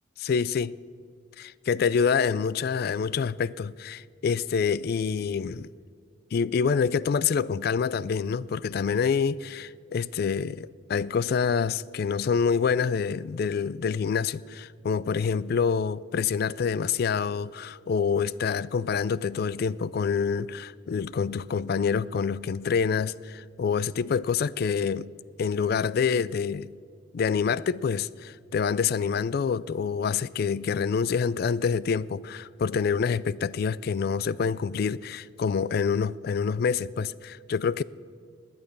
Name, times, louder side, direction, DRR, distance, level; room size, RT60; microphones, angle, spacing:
voice 1, 0.2-0.7 1.4-5.7 6.3-25.1 25.4-26.7 27.1-37.8, left 6 dB, 50° left, 0.3 m, -27 dB
19.0 x 9.6 x 6.7 m
head